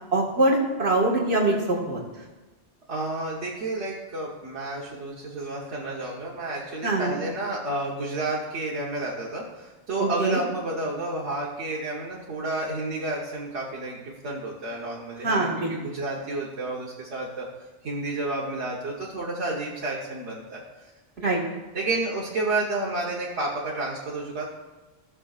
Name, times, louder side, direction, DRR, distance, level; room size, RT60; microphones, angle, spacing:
voice 1, 0.1-2.0 6.8-7.2 10.2-10.4 15.2-15.7 21.2-21.4, right 2 dB, 65° right, -2 dB, 2.1 m, -23 dB
voice 2, 2.9-17.5 17.8-20.9 21.7-24.4, right 2 dB, 85° right, -5 dB, 1.5 m, -31 dB
16.5 x 6.2 x 2.4 m, 1.2 s
omnidirectional pair, 1.1 m